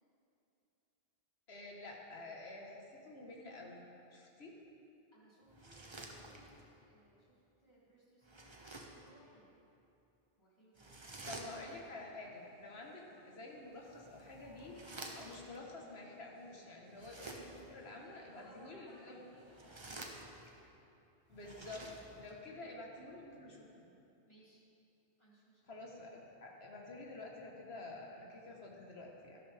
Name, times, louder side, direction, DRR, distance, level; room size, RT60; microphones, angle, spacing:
voice 1, 1.5-4.6 11.3-19.2 21.3-21.9 22.2-23.7 25.7-29.4, left 2 dB, 85° left, -1 dB, 1.7 m, -50 dB
voice 2, 5.1-9.5 10.4-11.1 12.6-12.8 18.0-20.4 22.6-22.7 24.3-24.6 25.2-25.6, equal, 25° left, -8 dB, 3.1 m, -65 dB
sound 1, 5.5-6.7 8.2-9.1 10.8-11.9 13.7-15.6 16.9-17.8 19.4-20.6 21.3-22.4, right 2 dB, 30° right, 0.9 m, -50 dB
sound 2, 11.2-20.4, equal, 70° right, 2.2 m, -67 dB
12.5 x 12.0 x 3.5 m, 2.8 s
omnidirectional pair, 1.0 m